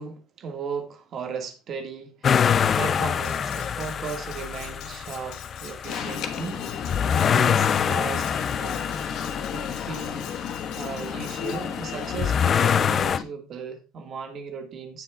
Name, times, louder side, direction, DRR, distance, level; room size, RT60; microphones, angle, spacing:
voice 1, 0.0-6.6 7.1-8.3 8.6-10.3 10.8-15.0, right 5 dB, 35° right, 5 dB, 1.6 m, -36 dB
sound 1, 2.2-13.2, left 7 dB, 25° left, 0.3 m, -26 dB
Cutlery silverware, 3.2-11.6, left 9 dB, 60° left, 2.2 m, -46 dB
Alarm, 5.9-13.2, left 7 dB, 45° left, 1.2 m, -33 dB
16.5 x 6.3 x 2.3 m, 0.32 s
cardioid pair, 165°, 0 cm